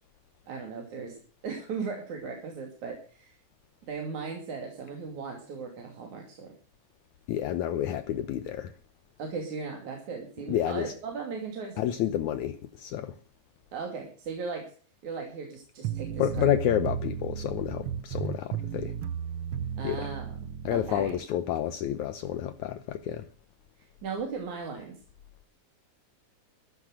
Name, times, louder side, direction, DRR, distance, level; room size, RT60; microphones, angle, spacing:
voice 1, 0.5-1.2 1.4-3.3 3.9-6.5 9.2-11.9 13.7-14.6 15.0-16.5 19.8-20.3 20.7-21.2 23.8-25.0, right 5 dB, 65° right, 4.0 m, -37 dB
voice 2, 7.3-8.7 10.5-10.9 11.8-13.1 16.2-18.9 19.8-20.1 20.7-23.3, left 11 dB, 70° left, 2.2 m, -29 dB
sound 1, 15.8-21.2, right 8 dB, 90° right, 1.1 m, -34 dB
14.0 x 11.5 x 6.4 m
omnidirectional pair, 3.7 m